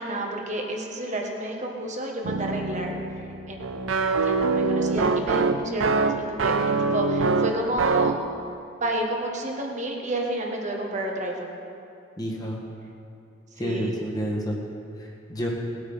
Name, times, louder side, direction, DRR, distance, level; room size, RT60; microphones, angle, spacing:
voice 1, 0.0-2.9 3.5-8.1 8.8-11.5 13.6-14.0, right 1 dB, 40° right, 0 dB, 1.6 m, -30 dB
sound 1, 2.2-8.2, right 4 dB, 90° right, 0.6 m, -24 dB
voice 2, 12.2-12.6 13.6-14.6 15.0-15.5, equal, 20° left, -3 dB, 1.8 m, -29 dB
18.5 x 8.5 x 5.7 m, 2.7 s
head